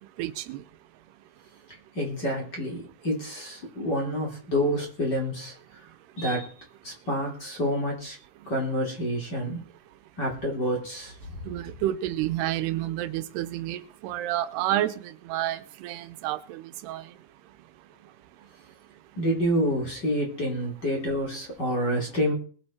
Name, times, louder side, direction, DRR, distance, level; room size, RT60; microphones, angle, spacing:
voice 1, 0.2-0.6 11.5-17.1, right 13 dB, 90° right, 11 dB, 2.9 m, -30 dB
voice 2, 1.9-5.5 6.2-6.5 6.8-8.2 8.5-9.7 10.2-11.4 19.2-22.3, equal, 30° left, 0 dB, 3.0 m, -28 dB
22.0 x 8.0 x 4.4 m, 0.44 s
omnidirectional pair, 4.7 m